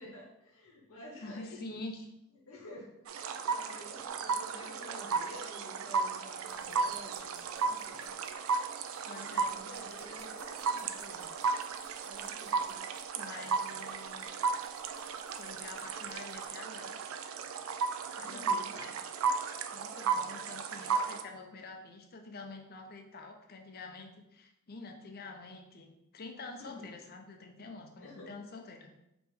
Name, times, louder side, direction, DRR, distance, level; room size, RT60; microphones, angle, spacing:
voice 1, 0.0-1.6 2.5-2.9 3.2-8.1 9.4-11.3 12.0-12.8 18.2-18.9 21.2-21.5 26.6-26.8 28.0-28.4, left 1 dB, 80° left, -2 dB, 0.9 m, -50 dB
voice 2, 1.2-2.0 9.1-9.6 13.2-14.3 15.0-16.9 18.1-18.9 19.7-28.9, left 3 dB, 50° left, 4 dB, 0.6 m, -47 dB
sound 1, 3.1-21.2, right 5 dB, 70° right, 0.4 m, -35 dB
sound 2, 4.0-4.1 4.4-4.7 5.1-5.4 5.8-6.0 6.4-16.6, right 2 dB, 35° right, 1.3 m, -61 dB
4.9 x 3.0 x 3.5 m, 0.84 s
head